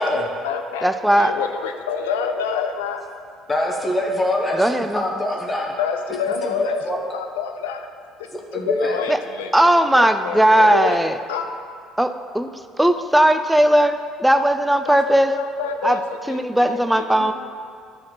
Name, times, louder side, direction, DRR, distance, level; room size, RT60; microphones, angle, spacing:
voice 1, 0.0-0.9 1.2-3.1 5.8-6.8 7.1-7.9 8.5-9.5 9.9-11.0 11.3-11.5 14.9-16.4 16.7-17.3, left 6 dB, 90° left, 6 dB, 0.6 m, -27 dB
voice 2, 0.8-1.3 4.6-5.0 9.1-9.2 9.5-11.2 12.0-12.5 12.8-15.4 15.8-16.0 16.3-17.3, right 1 dB, 5° right, 9 dB, 0.5 m, -17 dB
voice 3, 3.5-5.7 6.4-7.0 8.3-8.9, left 1 dB, 25° left, 0 dB, 1.3 m, -24 dB
11.0 x 4.3 x 5.6 m, 2.3 s
hypercardioid pair, 70°, 0 cm